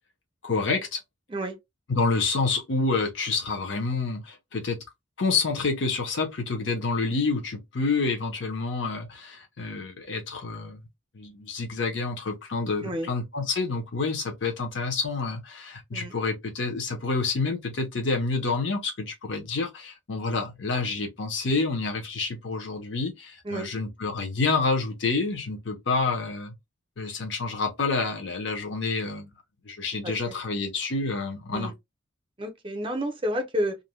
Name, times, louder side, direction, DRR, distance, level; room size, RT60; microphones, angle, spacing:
voice 1, 0.4-1.0 1.9-4.8 5.2-10.8 11.1-26.5 27.0-29.3 29.6-31.7, left 3 dB, 70° left, 0.8 m, -28 dB
voice 2, 30.0-30.3 31.5-31.7 32.4-33.8, equal, 25° right, 0.5 m, -30 dB
2.5 x 2.1 x 3.0 m
head